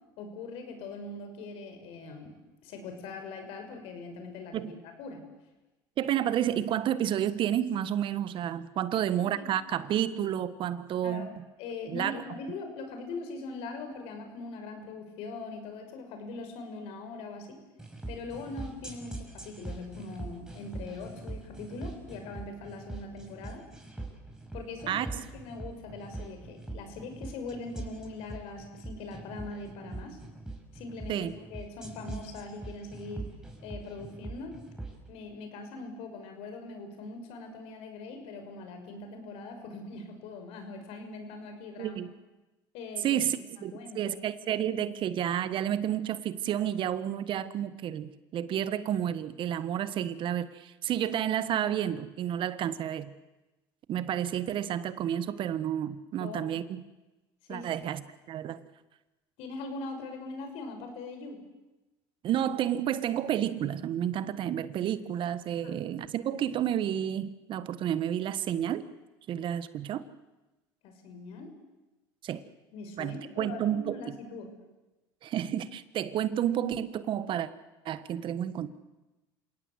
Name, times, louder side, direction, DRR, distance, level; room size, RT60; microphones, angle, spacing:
voice 1, 0.2-2.3 2.6-4.6 5.0-5.2 9.2-9.5 11.0-11.3 11.6-17.6 18.1-23.6 24.5-30.2 30.7-33.3 33.6-34.5 35.1-42.0 42.7-43.2 43.6-44.2 56.2-56.5 57.5-57.8 59.4-61.4 65.6-65.7 70.8-71.5 72.7-74.5, left 3 dB, 70° left, 6 dB, 5.7 m, -41 dB
voice 2, 6.0-11.4 11.9-12.1 24.9-25.1 31.1-31.3 41.8-42.1 43.0-53.1 53.9-56.8 57.5-58.0 58.3-58.6 62.2-68.8 69.3-70.0 72.2-72.4 73.0-74.0 75.2-77.5 77.8-78.7, right 10 dB, 50° right, 14 dB, 1.4 m, -30 dB
sound 1, 17.8-35.0, right 2 dB, 5° right, 5.8 m, -42 dB
28.0 x 17.5 x 8.1 m, 1.0 s
supercardioid pair, 90°, 11 cm